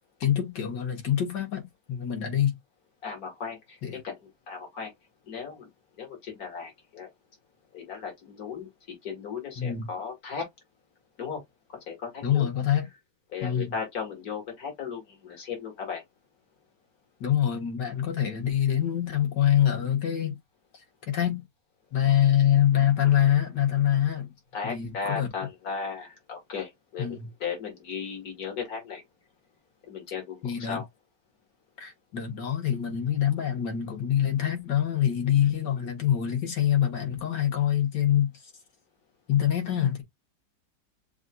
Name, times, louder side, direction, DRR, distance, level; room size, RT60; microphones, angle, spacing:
voice 1, 0.2-2.6 3.8-4.0 9.6-9.9 12.2-12.9 13.4-13.7 17.2-20.4 21.1-21.4 21.9-24.3 24.6-25.3 27.0-27.3 30.4-30.8 31.8-38.3 39.3-40.0, left 10 dB, 85° left, 2.2 m, -25 dB
voice 2, 3.0-3.8 4.0-4.2 4.5-4.9 5.3-5.7 6.0-7.1 7.7-8.7 9.0-10.5 11.2-11.4 11.7-12.5 13.3-16.0 24.5-29.0 29.8-30.8, left 6 dB, 60° left, 2.5 m, -36 dB
7.0 x 2.7 x 2.3 m
omnidirectional pair, 1.8 m